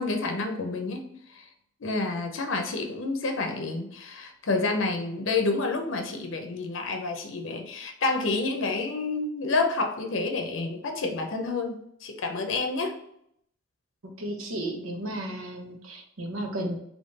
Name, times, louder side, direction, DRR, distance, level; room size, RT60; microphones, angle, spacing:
voice 1, 0.0-1.5 1.8-13.0, left 3 dB, 70° left, 4 dB, 0.6 m, -29 dB
voice 2, 14.2-16.8, right 1 dB, 90° right, 2 dB, 0.9 m, -33 dB
3.6 x 3.0 x 4.0 m, 0.72 s
head